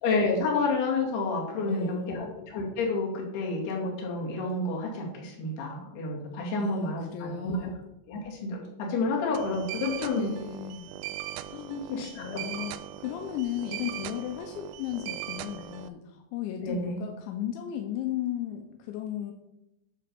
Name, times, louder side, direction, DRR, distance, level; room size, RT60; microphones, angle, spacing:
voice 1, 0.0-7.7 8.1-10.3 11.7-12.3 12.6-12.7 16.6-17.0, left 3 dB, 60° left, -2 dB, 3.7 m, -30 dB
voice 2, 1.7-2.3 6.6-7.8 10.1-10.9 11.5-11.8 12.2-19.3, left 11 dB, 85° left, 4 dB, 2.8 m, -35 dB
sound 1, 9.3-15.9, right 13 dB, 90° right, 3.2 m, -39 dB
10.5 x 3.9 x 6.7 m, 0.90 s
omnidirectional pair, 5.7 m